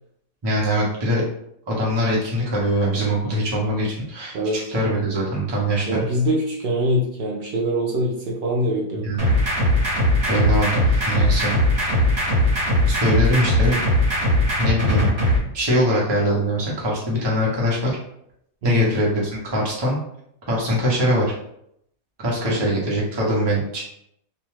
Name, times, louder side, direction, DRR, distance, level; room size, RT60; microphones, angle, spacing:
voice 1, 0.4-1.2 1.7-4.4 4.7-6.0 9.0-9.2 10.3-11.5 12.9-13.8 14.6-15.1 15.5-17.9 18.6-20.0 20.5-21.3 22.2-23.8, equal, 25° right, -5 dB, 0.7 m, -22 dB
voice 2, 5.8-9.1 18.6-18.9 22.5-22.7, equal, 75° right, -2 dB, 0.5 m, -24 dB
sound 1, 9.2-15.4, left 1 dB, 50° right, 1.2 m, -19 dB
2.7 x 2.2 x 3.1 m, 0.74 s
omnidirectional pair, 1.5 m